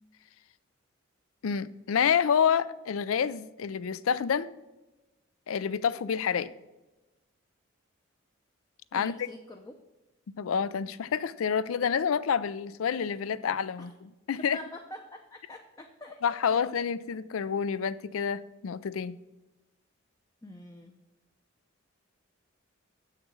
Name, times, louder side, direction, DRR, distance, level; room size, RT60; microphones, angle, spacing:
voice 1, 1.4-4.6 5.5-6.5 8.9-9.3 10.4-14.6 16.2-19.2, left 7 dB, 80° left, 0.4 m, -28 dB
voice 2, 8.9-9.8 13.8-13.9 14.5-16.2 16.5-16.6 20.4-21.0, left 1 dB, 15° left, 0.5 m, -45 dB
7.3 x 6.6 x 6.2 m
head